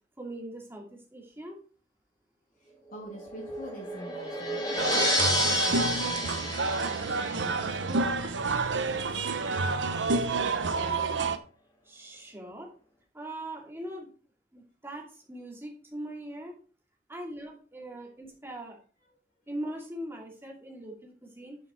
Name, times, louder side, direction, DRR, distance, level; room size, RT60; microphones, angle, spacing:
voice 1, 0.2-1.6 11.8-12.7 13.1-14.1 14.5-16.6 17.1-18.8 19.5-21.6, right 1 dB, 15° right, 0 dB, 2.6 m, -41 dB
voice 2, 2.6-9.9 12.1-12.2, equal, 50° left, -5 dB, 2.6 m, -47 dB
sound 1, 2.9-8.0, left 1 dB, 20° left, 2.7 m, -31 dB
sound 2, 4.8-11.4, right 3 dB, 80° right, 0.9 m, -29 dB
9.6 x 6.6 x 4.3 m, 0.40 s
head